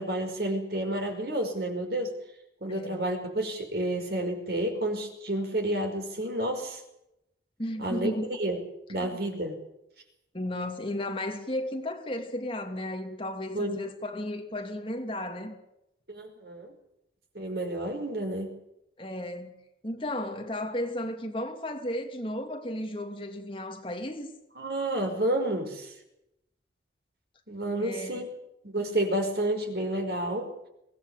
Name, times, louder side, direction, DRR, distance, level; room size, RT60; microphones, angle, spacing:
voice 1, 0.0-2.1 2.6-6.8 7.8-8.6 8.9-9.6 13.5-13.8 16.1-16.7 17.4-18.5 24.6-25.9 27.5-28.3 28.6-30.5, right 1 dB, 60° right, 5.4 m, -30 dB
voice 2, 2.7-3.0 7.6-8.3 9.0-9.1 10.3-15.6 19.0-19.5 19.8-24.3 27.8-28.3, left 1 dB, 30° left, 2.7 m, -34 dB
24.0 x 18.0 x 8.3 m
head